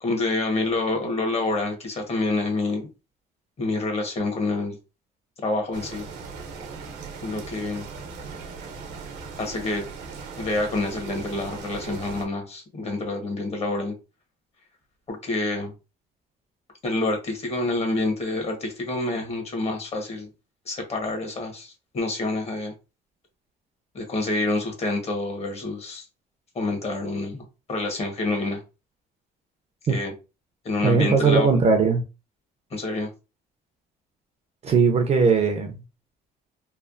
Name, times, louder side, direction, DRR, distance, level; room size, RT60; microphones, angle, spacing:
voice 1, 0.0-2.9 3.6-4.8 5.4-6.0 7.2-7.8 9.4-9.8 10.4-13.9 15.1-15.7 16.8-20.3 20.6-22.7 23.9-26.0 26.5-28.6 29.9-30.1 30.6-31.6 32.7-33.1, left 2 dB, 40° left, 1.1 m, -27 dB
sound 1, 5.7-12.3, right 5 dB, 80° right, 0.9 m, -39 dB
voice 2, 30.8-32.0 34.6-35.8, right 5 dB, 40° right, 0.6 m, -19 dB
3.2 x 2.1 x 2.5 m
cardioid pair, 110°, 17 cm